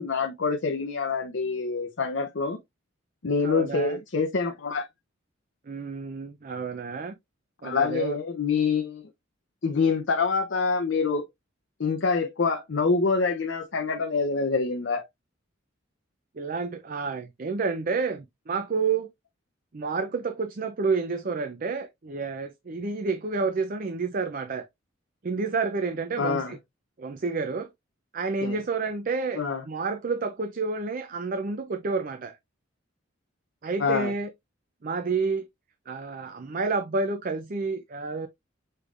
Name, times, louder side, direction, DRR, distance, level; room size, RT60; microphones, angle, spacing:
voice 1, 0.0-2.6 3.2-4.9 7.6-9.1 9.6-11.2 11.8-15.0 26.2-26.5 28.4-28.6 29.3-29.6 33.8-34.1, left 4 dB, 65° left, 0.7 m, -26 dB
voice 2, 3.4-4.0 5.7-7.2 7.6-8.2 16.4-19.1 19.7-24.7 25.2-26.6 27.0-27.7 28.1-32.4 33.6-34.3 34.8-35.5 35.9-38.3, right 4 dB, 45° right, 0.5 m, -29 dB
6.7 x 3.2 x 2.4 m
head